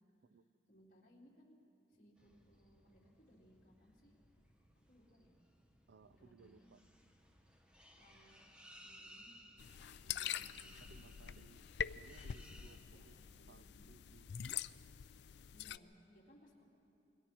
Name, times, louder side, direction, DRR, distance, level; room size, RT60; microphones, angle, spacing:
voice 1, 0.7-1.5 1.9-4.1 4.9-5.3 6.0-6.7 8.0-8.5 8.7-9.3 10.0-11.3 12.4-13.9 15.5-16.6, equal, 45° left, -4 dB, 3.3 m, -66 dB
sound 1, 2.2-12.8, equal, 5° right, 1.2 m, -62 dB
voice 2, 5.9-6.8 10.9-11.6 11.9-13.2 13.5-14.3 14.6-14.7, right 4 dB, 80° right, 14 dB, 0.5 m, -63 dB
sound 2, 9.6-15.8, left 9 dB, 70° left, 0.4 m, -45 dB
27.0 x 22.5 x 4.5 m, 2.7 s
head